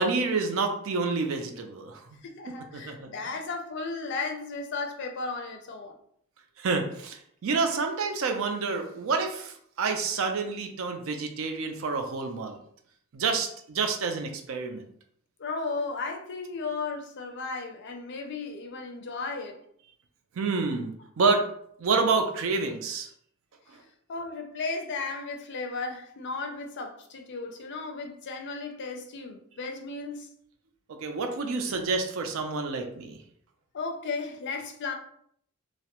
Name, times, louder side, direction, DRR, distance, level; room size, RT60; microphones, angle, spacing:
voice 1, 0.0-2.2 2.7-3.1 6.6-12.6 13.1-14.8 20.4-21.4 21.8-23.1 30.9-33.2, right 4 dB, 65° right, 0.4 m, -28 dB
voice 2, 2.2-5.9 15.4-19.6 24.1-30.3 33.7-34.9, left 3 dB, 55° left, 0.4 m, -35 dB
2.3 x 2.0 x 2.8 m
head